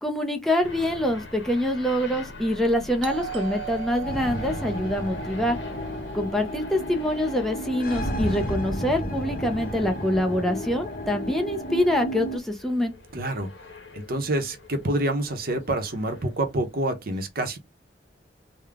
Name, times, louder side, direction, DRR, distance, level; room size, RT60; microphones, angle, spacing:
voice 1, 0.0-5.6 6.1-12.9, left 1 dB, ahead, 0.5 m, -25 dB
sound 1, 0.6-16.8, left 2 dB, 80° left, 1.0 m, -44 dB
Doorbell, 3.0-7.6, right 10 dB, 85° right, 0.4 m, -40 dB
sound 2, 4.0-12.4, equal, 50° left, 1.0 m, -32 dB
voice 2, 13.1-13.5 13.9-17.6, right 1 dB, 55° right, 0.9 m, -27 dB
3.7 x 2.2 x 3.4 m
head